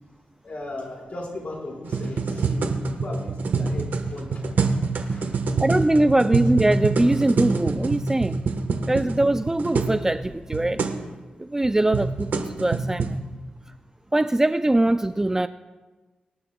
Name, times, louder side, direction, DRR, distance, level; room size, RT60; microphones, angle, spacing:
voice 1, 0.4-4.5 4.9-5.5, left 2 dB, 50° left, -3 dB, 5.0 m, -37 dB
sound 1, 1.8-10.0 10.2-10.3 10.5-11.0 11.6-13.2, right 4 dB, 80° right, 1.3 m, -25 dB
voice 2, 5.6-8.4 8.9-10.8 11.4-13.2 14.1-15.5, right 1 dB, 15° right, 11 dB, 0.4 m, -22 dB
23.5 x 11.5 x 2.3 m, 1.2 s
cardioid pair, 75°, 3 cm